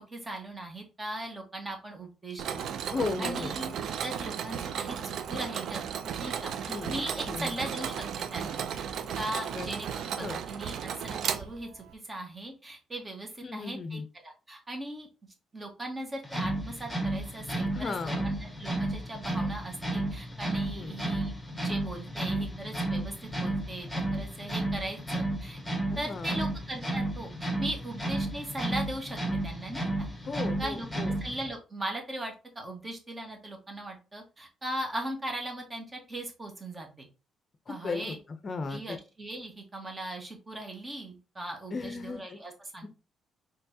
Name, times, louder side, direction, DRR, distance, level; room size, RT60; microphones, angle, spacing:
voice 1, 0.0-2.7 3.2-3.7 4.0-5.8 6.2-8.0 8.3-8.6 9.1-15.1 15.5-25.6 26.0-30.1 30.6-30.9 31.2-37.1 37.7-38.2 38.7-42.9, right 1 dB, 25° right, 3 dB, 1.4 m, -39 dB
Mechanisms, 2.4-11.9, right 8 dB, 70° right, 0.4 m, -35 dB
voice 2, 2.9-3.5 6.7-6.9 7.3-7.5 9.5-9.7 10.2-10.4 13.4-14.1 17.7-18.3 20.8-21.0 25.9-26.5 30.3-31.1 37.7-38.1 38.4-39.0 41.7-42.4 42.8-42.9, left 4 dB, 40° left, 8 dB, 0.6 m, -35 dB
sound 1, 16.2-31.5, right 1 dB, ahead, 1.6 m, -32 dB
4.4 x 3.2 x 2.7 m, 0.31 s
cardioid pair, 90°, 0 cm